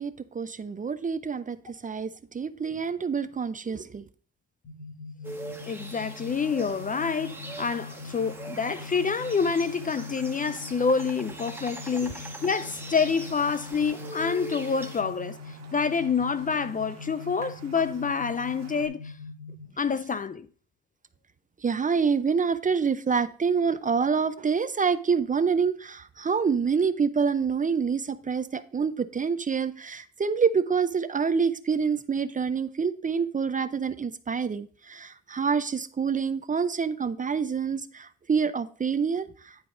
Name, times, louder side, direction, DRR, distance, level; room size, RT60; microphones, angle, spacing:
voice 1, 0.0-1.6 1.8-4.0 21.6-39.7, right 6 dB, 25° right, 0.5 m, -27 dB
sound 1, 4.6-19.7, left 3 dB, 70° left, 3.7 m, -42 dB
sound 2, 5.2-15.0, right 2 dB, 5° right, 1.4 m, -42 dB
voice 2, 5.7-15.4 15.7-19.1 19.8-20.5, left 5 dB, 30° left, 0.5 m, -27 dB
Raindrop, 6.3-18.9, right 6 dB, 60° right, 1.7 m, -51 dB
10.5 x 4.6 x 3.8 m
cardioid pair, 90°, 30 cm